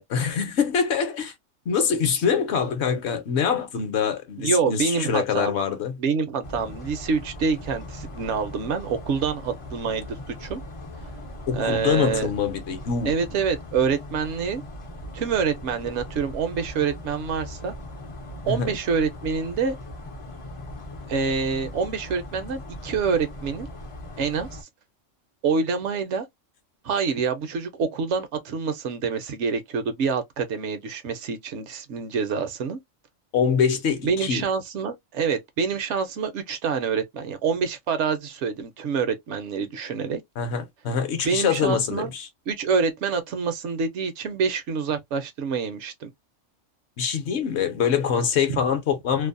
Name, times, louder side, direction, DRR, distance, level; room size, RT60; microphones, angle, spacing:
voice 1, 0.1-1.3 1.7-5.9 11.5-13.1 18.5-18.7 33.3-34.5 40.4-42.3 47.0-49.3, left 7 dB, 65° left, 0.9 m, -24 dB
voice 2, 4.4-5.5 6.0-10.6 11.5-12.3 13.1-14.6 15.1-17.7 18.4-19.8 21.1-23.7 24.2-24.6 25.4-26.2 26.8-32.8 34.0-40.2 41.2-42.1 42.5-46.1 48.5-48.6, right 5 dB, 70° right, 0.8 m, -26 dB
sound 1, 6.4-24.6, left 1 dB, 45° left, 0.4 m, -39 dB
2.6 x 2.0 x 2.4 m
omnidirectional pair, 1.3 m